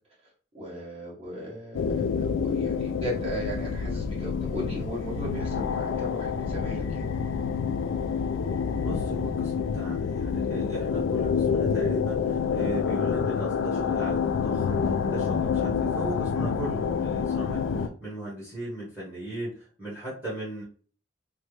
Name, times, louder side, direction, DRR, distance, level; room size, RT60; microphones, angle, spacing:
voice 1, 0.5-7.0, equal, 35° right, -5 dB, 1.5 m, -36 dB
sound 1, 1.7-17.9, left 6 dB, 85° left, 0.3 m, -27 dB
voice 2, 8.8-20.6, right 1 dB, 10° right, -6 dB, 1.2 m, -37 dB
3.2 x 2.1 x 3.1 m, 0.42 s
head